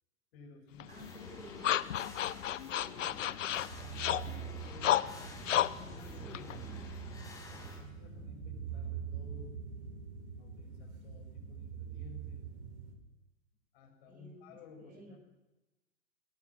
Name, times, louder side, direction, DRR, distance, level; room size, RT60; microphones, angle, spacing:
voice 1, 0.3-1.0 2.8-3.2 3.8-5.0 5.7-6.5 7.4-9.6 10.4-12.4 13.7-15.2, left 4 dB, 50° left, 3 dB, 7.4 m, -55 dB
sound 1, 0.8-7.3, left 11 dB, 70° left, 1.0 m, -34 dB
sound 2, 0.9-7.8, left 2 dB, 10° left, 6.8 m, -51 dB
voice 2, 0.9-1.9 6.2-6.9 14.1-14.4 14.8-15.2, right 1 dB, 20° right, 3 dB, 6.7 m, -54 dB
sound 3, 3.5-13.0, right 8 dB, 55° right, 4.8 m, -44 dB
21.5 x 19.0 x 6.3 m, 1.1 s
hypercardioid pair, 120°, 40 cm